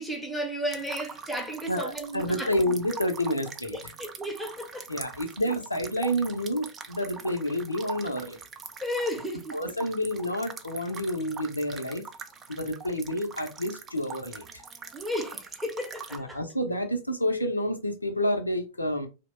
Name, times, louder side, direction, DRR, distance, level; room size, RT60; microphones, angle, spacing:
voice 1, 0.0-2.5 3.7-4.8 8.8-9.6 14.9-16.4, equal, ahead, 0.8 m, -33 dB
sound 1, 0.7-16.2, right 5 dB, 25° right, 0.4 m, -43 dB
voice 2, 1.7-3.8 4.9-8.4 9.5-12.1 12.5-14.4 16.1-19.1, equal, 85° left, 0.5 m, -29 dB
2.8 x 2.1 x 3.0 m
figure-of-eight pair, 90°, 0 cm